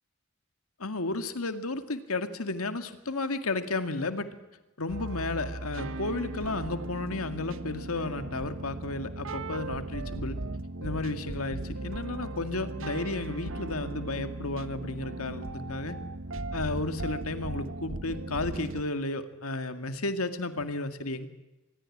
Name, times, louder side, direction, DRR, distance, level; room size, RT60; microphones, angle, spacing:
voice 1, 0.8-4.3 4.8-10.4 10.8-16.0 16.5-21.3, left 2 dB, 80° left, 9 dB, 2.1 m, -33 dB
sound 1, 4.9-18.8, right 2 dB, 65° right, 1.1 m, -37 dB
26.0 x 20.5 x 8.7 m, 1.0 s
head